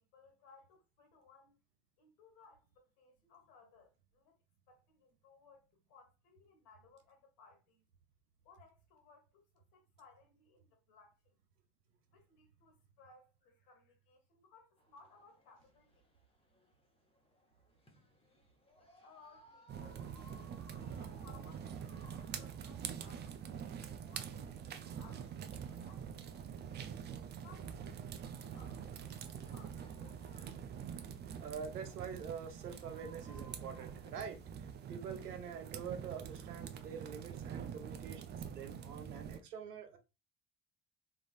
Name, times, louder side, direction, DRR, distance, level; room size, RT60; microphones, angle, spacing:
voice 1, 0.0-1.6 2.0-4.4 4.7-7.8 8.4-11.4 12.1-16.0 18.8-22.1 22.4-23.4 24.0-26.5 27.4-30.1, left 4 dB, 60° left, 1.7 m, -63 dB
sound 1, 14.8-34.5, equal, 10° left, 1.1 m, -65 dB
sound 2, 19.7-39.4, right 8 dB, 25° right, 0.4 m, -45 dB
voice 2, 31.4-40.0, right 7 dB, 80° right, 0.9 m, -46 dB
3.7 x 3.4 x 2.4 m
figure-of-eight pair, 55°, 46 cm